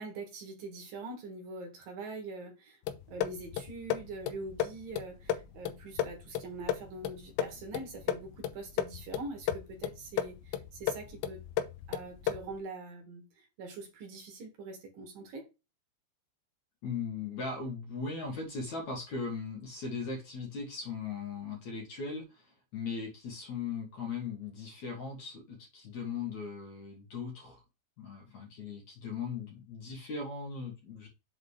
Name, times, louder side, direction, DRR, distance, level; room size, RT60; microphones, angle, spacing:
voice 1, 0.0-2.8 3.1-11.4 11.9-15.5, right 3 dB, 60° right, 3.0 m, -43 dB
sound 1, 2.9-12.6, left 10 dB, 90° left, 3.1 m, -35 dB
voice 2, 16.8-27.6 28.0-31.1, left 5 dB, 50° left, 2.5 m, -39 dB
7.6 x 4.0 x 4.9 m
omnidirectional pair, 5.1 m